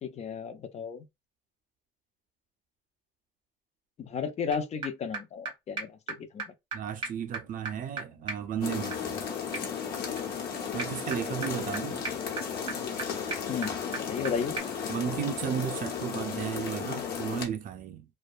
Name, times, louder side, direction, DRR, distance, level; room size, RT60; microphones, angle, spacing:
voice 1, 0.0-1.0 4.0-6.5 11.3-11.8 13.5-14.6, left 6 dB, 40° left, 0.5 m, -34 dB
sound 1, 4.5-4.6 4.8-4.9 5.1-5.2 5.5-5.6 5.8-5.9 6.1-6.2 6.4-6.5 6.7-6.8 7.0-14.3 14.6-14.7, right 4 dB, 30° right, 1.5 m, -39 dB
voice 2, 6.7-9.2 10.7-12.0 14.9-18.1, right 9 dB, 55° right, 0.4 m, -34 dB
sound 2, 8.6-17.4, left 7 dB, 65° left, 1.0 m, -34 dB
2.6 x 2.2 x 2.3 m
cardioid pair, 110°, 17 cm